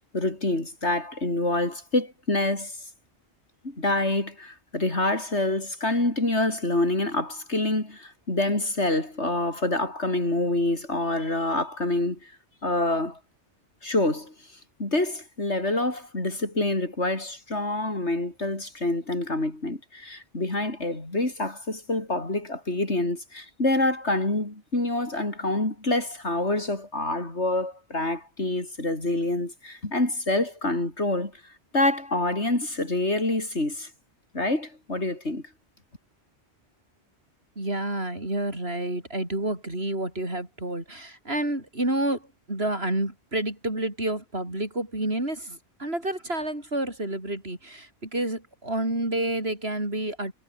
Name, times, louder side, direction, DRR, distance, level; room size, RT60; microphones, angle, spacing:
voice 1, 0.1-2.8 3.6-12.3 12.6-13.2 13.8-14.3 14.8-31.3 31.7-33.9 34.3-35.4, left 2 dB, 80° left, 5.9 m, -26 dB
voice 2, 37.6-50.3, right 1 dB, 65° right, 6.9 m, -29 dB
omnidirectional pair, 1.1 m